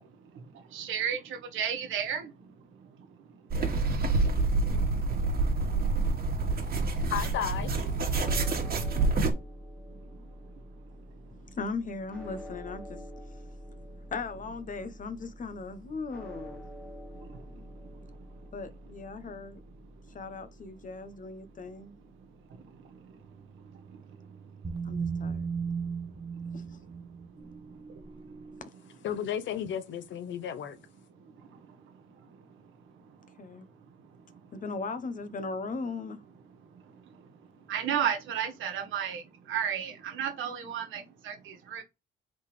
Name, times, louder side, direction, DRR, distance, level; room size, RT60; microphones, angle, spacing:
voice 1, 0.7-1.2 1.5-2.3 37.7-39.2 39.5-41.8, right 8 dB, 85° right, 1.3 m, -32 dB
sound 1, 3.5-9.3, right 3 dB, 50° right, 1.5 m, -27 dB
voice 2, 7.1-7.7 29.0-30.8, left 9 dB, 70° left, 0.7 m, -33 dB
sound 2, 8.1-22.3, equal, 5° left, 1.9 m, -47 dB
voice 3, 11.5-13.0 14.1-16.6 18.5-19.6 20.1-22.0 24.8-25.5 26.5-26.8 28.6-28.7 33.4-33.7 34.5-36.2, left 4 dB, 40° left, 0.9 m, -38 dB
sound 3, 23.2-28.6, right 6 dB, 25° right, 0.9 m, -37 dB
3.8 x 3.8 x 3.2 m
cardioid pair, 90°, 20 cm